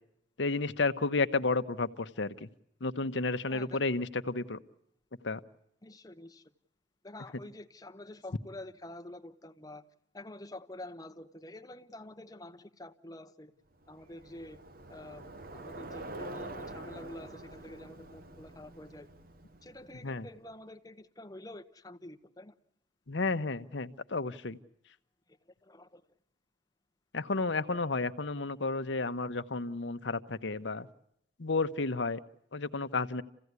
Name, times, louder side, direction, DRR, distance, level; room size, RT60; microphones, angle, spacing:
voice 1, 0.4-2.5 2.8-4.6 5.2-5.4 20.0-20.3 23.1-24.6 27.1-30.9 31.4-32.2 32.5-33.2, left 3 dB, 75° left, 0.9 m, -32 dB
voice 2, 3.5-3.8 5.8-6.4 7.0-9.8 10.1-13.5 13.9-14.6 14.9-15.3 15.5-19.1 19.6-22.5 25.6-26.0, left 1 dB, 20° left, 0.9 m, -47 dB
Bicycle, 13.8-20.3, right 2 dB, 50° right, 1.0 m, -46 dB
28.5 x 16.0 x 9.5 m
head